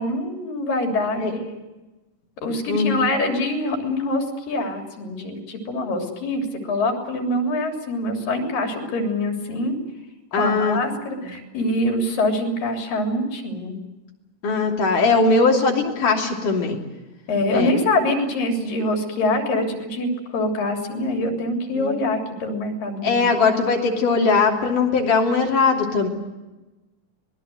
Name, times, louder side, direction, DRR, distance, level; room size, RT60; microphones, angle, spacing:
voice 1, 0.0-1.4 2.4-9.8 10.4-13.8 17.3-23.2 24.2-24.3, left 1 dB, 90° left, 3 dB, 5.1 m, -24 dB
voice 2, 2.7-3.0 10.3-10.8 11.2-11.3 14.4-16.8 17.5-17.7 21.7-22.0 23.0-26.1, left 4 dB, 70° left, 0 dB, 4.6 m, -20 dB
25.0 x 20.5 x 7.9 m, 1.1 s
omnidirectional pair, 3.8 m